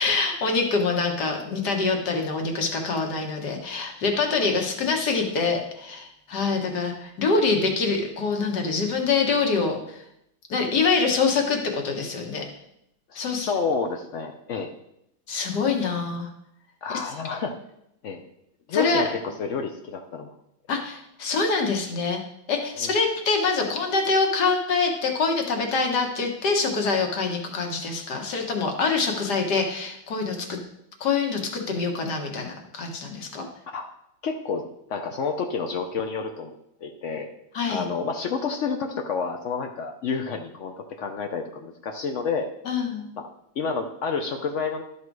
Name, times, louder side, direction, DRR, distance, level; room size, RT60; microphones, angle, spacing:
voice 1, 0.0-10.0 10.5-12.5 13.2-13.5 15.3-16.3 16.9-17.0 18.7-19.0 20.7-22.2 22.5-30.6 31.0-33.4 37.5-37.8 42.7-43.1, left 4 dB, 55° left, 3 dB, 1.8 m, -25 dB
voice 2, 13.1-14.7 16.8-17.6 18.0-18.2 18.7-20.3 22.8-22.9 33.7-33.9 34.2-34.6 34.9-36.6 36.8-37.3 37.7-42.5 43.2-43.3 43.6-44.8, left 5 dB, 80° left, 4 dB, 0.6 m, -29 dB
12.0 x 5.3 x 4.7 m, 0.79 s
omnidirectional pair, 2.2 m